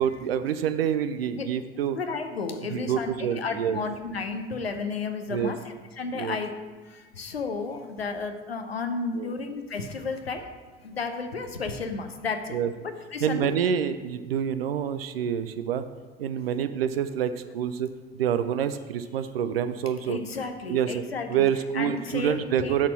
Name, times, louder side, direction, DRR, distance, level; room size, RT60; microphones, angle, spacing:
voice 1, 0.0-2.0 2.7-3.8 5.3-5.5 6.1-6.4 9.1-9.3 12.5-12.7 13.2-15.8 16.2-20.2 20.7-21.0 21.3-22.9, right 8 dB, 75° right, 11 dB, 0.5 m, -27 dB
voice 2, 1.9-6.5 7.2-10.5 10.8-12.5 12.8-13.6 20.1-21.5 21.7-22.8, left 4 dB, 85° left, 6 dB, 0.7 m, -32 dB
9.9 x 4.2 x 5.9 m, 1.4 s
figure-of-eight pair, 60°, 30 cm